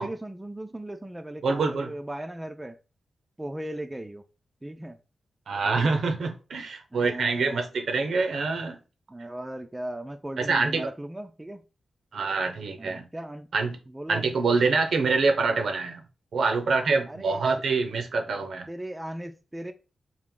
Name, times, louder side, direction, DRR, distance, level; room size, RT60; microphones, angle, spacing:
voice 1, 0.0-2.8 3.4-4.2 4.6-5.0 6.9-7.6 9.1-11.6 12.8-13.5 13.9-14.5 17.1-17.4 18.7-19.7, right 1 dB, 10° right, 0.3 m, -37 dB
voice 2, 1.4-1.9 5.5-8.8 10.4-10.9 12.1-13.0 13.5-13.8 14.1-16.0 16.3-18.7, right 4 dB, 75° right, 0.7 m, -25 dB
3.7 x 2.5 x 3.7 m
wide cardioid pair, 105°, 0 cm